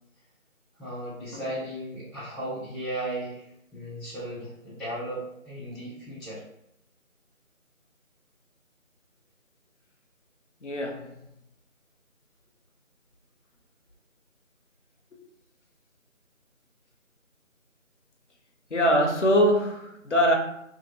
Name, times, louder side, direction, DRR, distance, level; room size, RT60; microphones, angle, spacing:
voice 1, 0.8-6.4, right 1 dB, ahead, -13 dB, 0.6 m, -36 dB
voice 2, 10.6-11.2 15.1-15.2 18.7-20.4, equal, 60° left, 1 dB, 0.6 m, -23 dB
2.6 x 2.4 x 2.8 m, 0.76 s
figure-of-eight pair, 180°, 41 cm